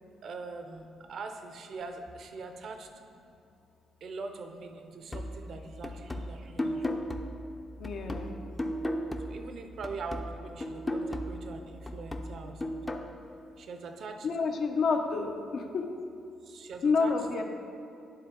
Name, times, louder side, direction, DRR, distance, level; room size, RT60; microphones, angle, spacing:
voice 1, 0.2-2.9 4.0-7.1 9.2-12.9 13.6-14.3 16.4-17.1, right 4 dB, 60° right, 6 dB, 0.6 m, -42 dB
sound 1, 5.1-9.6 9.8-13.1, left 1 dB, 20° left, 0.5 m, -36 dB
voice 2, 7.8-8.3 14.2-15.9 16.8-17.4, left 4 dB, 65° left, 4 dB, 0.7 m, -29 dB
11.0 x 3.8 x 3.8 m, 2.5 s
cardioid pair, 90°, 0 cm